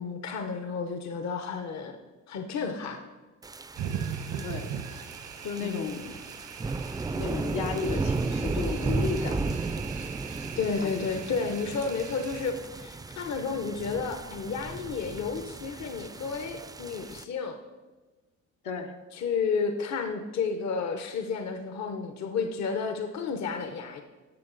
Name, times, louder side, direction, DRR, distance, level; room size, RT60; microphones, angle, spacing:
voice 1, 0.0-2.0 2.3-3.0 5.6-6.0 10.6-17.6 19.1-24.0, left 5 dB, 65° left, 6 dB, 0.8 m, -32 dB
sound 1, 3.4-17.2, right 3 dB, 15° right, 0.3 m, -34 dB
sound 2, 3.7-12.5, right 8 dB, 80° right, 1.0 m, -40 dB
voice 2, 5.4-6.1 7.1-9.6 10.8-11.1 18.6-18.9, left 5 dB, 90° left, 2 dB, 1.1 m, -34 dB
12.0 x 7.3 x 3.9 m, 1.2 s
cardioid pair, 90°, 30 cm